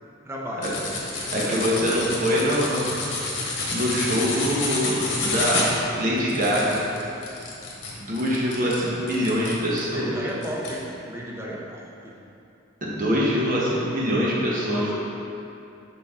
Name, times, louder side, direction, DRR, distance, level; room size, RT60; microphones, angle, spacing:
voice 1, 0.2-0.7 1.3-1.6 9.9-12.2 14.7-14.9, equal, 15° right, -4 dB, 0.7 m, -33 dB
sound 1, 0.6-9.9 10.4-10.8, left 3 dB, 60° left, 1.3 m, -29 dB
voice 2, 1.3-3.1 3.3-6.8 8.0-10.1 12.8-14.9, equal, 45° right, -6 dB, 1.1 m, -24 dB
6.5 x 5.4 x 3.6 m, 2.8 s
head